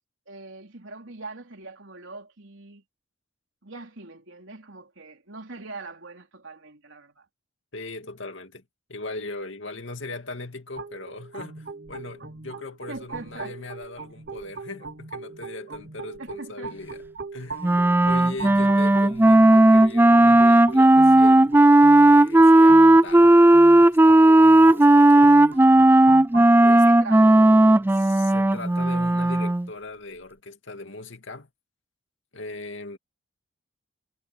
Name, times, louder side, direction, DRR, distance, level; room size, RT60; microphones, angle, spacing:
voice 1, 0.3-2.8 3.6-7.3 12.9-13.6 16.2-16.8 26.7-27.9, right 3 dB, 70° right, 3.8 m, -41 dB
voice 2, 7.7-8.6 8.9-17.0 17.3-17.7 18.0-21.6 22.1-23.4 24.0-25.6 26.6-26.8 27.6-31.5 32.3-33.0, left 2 dB, 70° left, 2.5 m, -39 dB
sound 1, 10.8-26.5, right 4 dB, 55° right, 1.0 m, -39 dB
Wind instrument woodwind instrument, 17.6-29.7, right 1 dB, 10° right, 0.4 m, -15 dB
head